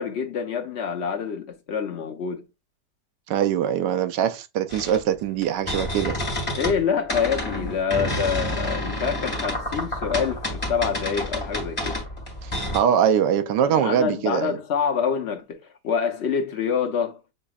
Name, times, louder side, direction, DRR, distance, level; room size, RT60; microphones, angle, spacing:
voice 1, 0.0-2.4 6.6-12.0 13.6-15.6 15.8-17.2, left 6 dB, 55° left, 0.8 m, -26 dB
voice 2, 3.3-6.2 12.4-14.6, right 9 dB, 90° right, 1.2 m, -23 dB
sound 1, 4.7-6.8 7.1-12.8, left 1 dB, 20° left, 1.6 m, -29 dB
6.7 x 3.0 x 2.3 m
omnidirectional pair, 1.8 m